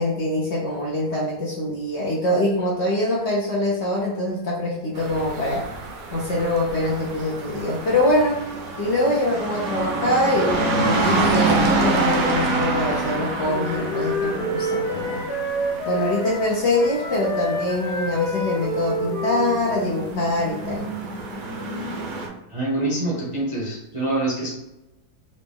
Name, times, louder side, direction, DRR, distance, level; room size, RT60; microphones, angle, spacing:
voice 1, 0.0-5.7 6.1-8.5 8.8-15.2 15.8-20.9, left 1 dB, 55° left, -4 dB, 0.8 m, -24 dB
sound 1, 5.0-22.3, right 3 dB, 60° right, 0.9 m, -27 dB
Wind instrument woodwind instrument, 13.4-20.6, equal, 75° left, 1.4 m, -29 dB
voice 2, 22.5-24.5, right 2 dB, 30° right, -6 dB, 0.6 m, -25 dB
3.9 x 2.2 x 3.5 m, 0.95 s
omnidirectional pair, 1.7 m